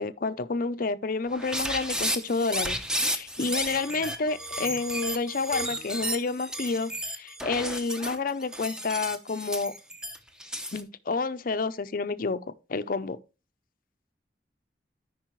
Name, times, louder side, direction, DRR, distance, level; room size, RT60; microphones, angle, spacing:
voice 1, 0.0-9.7 10.7-12.4 12.7-13.2, left 4 dB, 50° left, 0.6 m, -29 dB
sound 1, 1.3-10.8, equal, 5° right, 0.8 m, -33 dB
12.5 x 5.4 x 3.1 m
head